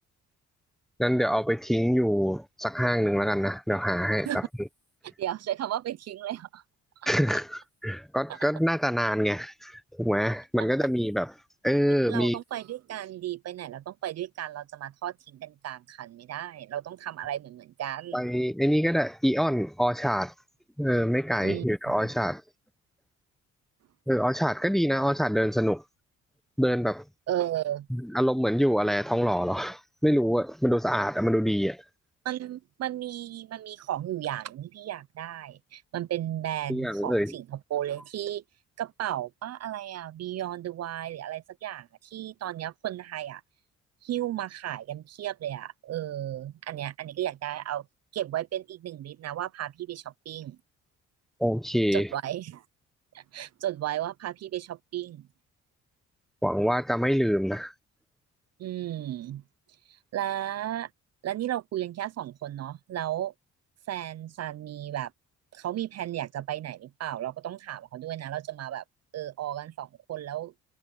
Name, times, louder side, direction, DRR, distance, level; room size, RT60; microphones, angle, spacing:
voice 1, 1.0-4.7 7.1-11.3 11.6-12.4 18.1-20.3 20.8-22.4 24.1-25.8 26.6-27.0 27.9-31.8 36.7-37.3 51.4-52.1 56.4-57.7, equal, ahead, 1.0 m, -25 dB
voice 2, 5.2-6.6 12.1-18.2 21.4-21.6 27.3-27.9 32.2-38.4 38.8-43.4 44.0-47.8 48.1-50.6 51.9-52.6 53.1-55.2 58.6-59.4 59.9-60.9 61.2-63.3 63.9-65.1 65.5-68.8 69.1-70.5, right 12 dB, 55° right, 0.6 m, -34 dB
cardioid pair, 90°, 30 cm